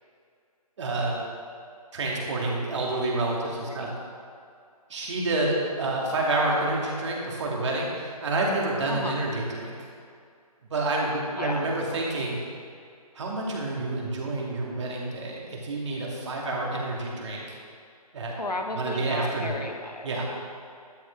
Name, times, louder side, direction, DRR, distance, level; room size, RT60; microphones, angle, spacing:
voice 1, 0.8-1.2 1.9-3.9 4.9-9.7 10.7-12.4 13.1-17.4 18.1-18.3 18.8-19.6 20.0-20.2, right 2 dB, 50° right, -3 dB, 2.5 m, -28 dB
voice 2, 3.6-3.9 8.9-9.2 11.3-11.7 18.4-20.2, left 2 dB, 90° left, 3 dB, 1.6 m, -34 dB
13.0 x 9.2 x 3.5 m, 2.3 s
figure-of-eight pair, 150°, 20 cm